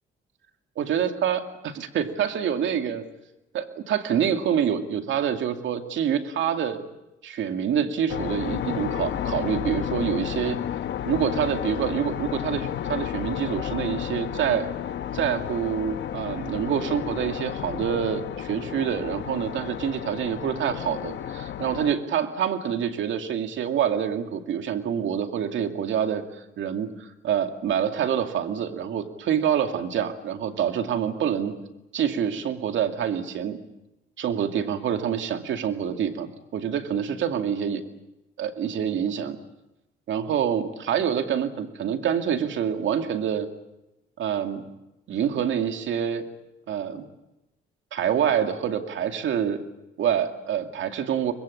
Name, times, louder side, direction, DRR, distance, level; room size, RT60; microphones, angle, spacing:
voice 1, 0.8-3.0 3.5-6.8 7.2-10.6 11.0-14.7 15.1-31.5 31.9-33.6 34.2-37.8 38.4-39.4 40.1-43.5 44.2-44.6 45.1-46.3 46.7-47.1 47.9-49.6 50.0-51.3, right 8 dB, 75° right, 6 dB, 2.4 m, -26 dB
sound 1, 8.1-21.9, left 10 dB, 65° left, 1.1 m, -32 dB
24.0 x 21.5 x 8.5 m, 0.95 s
cardioid pair, 90°, 20 cm